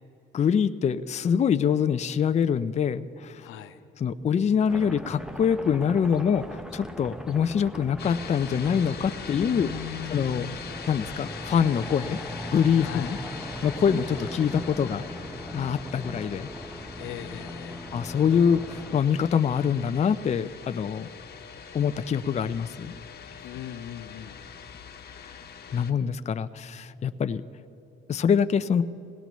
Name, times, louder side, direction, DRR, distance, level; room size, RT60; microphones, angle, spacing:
voice 1, 0.3-3.4 4.0-9.7 10.1-10.5 10.9-12.2 12.5-13.1 13.6-15.0 15.5-16.5 17.9-21.1 21.7-22.9 25.2-25.4 25.7-27.4 28.1-28.8, left 7 dB, 35° left, 11 dB, 0.4 m, -25 dB
voice 2, 3.4-3.8 9.3-10.6 12.8-13.2 17.0-17.9 23.4-24.4, left 11 dB, 90° left, 9 dB, 0.7 m, -39 dB
sound 1, 4.7-19.0, equal, 5° right, 0.6 m, -39 dB
sound 2, 8.0-25.9, left 7 dB, 55° left, 1.2 m, -42 dB
20.5 x 17.5 x 3.1 m, 2.9 s
cardioid pair, 90°, 20 cm